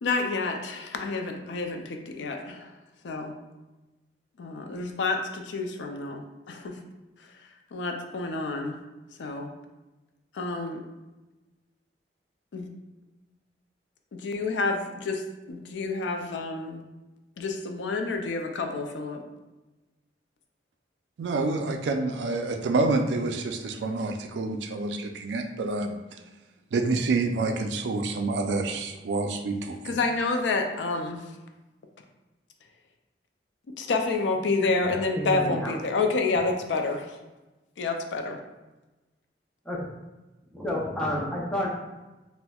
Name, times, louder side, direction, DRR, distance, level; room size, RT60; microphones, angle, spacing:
voice 1, 0.0-2.7 3.0-3.3 4.4-6.8 7.7-8.8 9.2-9.5 10.3-10.8 12.5-12.7 14.1-16.8 17.4-19.2 29.8-31.2 33.8-37.2 37.8-38.4, left 3 dB, 90° left, 4 dB, 0.4 m, -29 dB
voice 2, 21.2-26.0 26.7-30.0, right 3 dB, 75° right, 5 dB, 0.4 m, -28 dB
voice 3, 35.2-35.7 39.7-39.8 40.5-41.7, left 1 dB, 5° left, -4 dB, 0.5 m, -29 dB
4.2 x 2.0 x 2.3 m, 1.1 s
head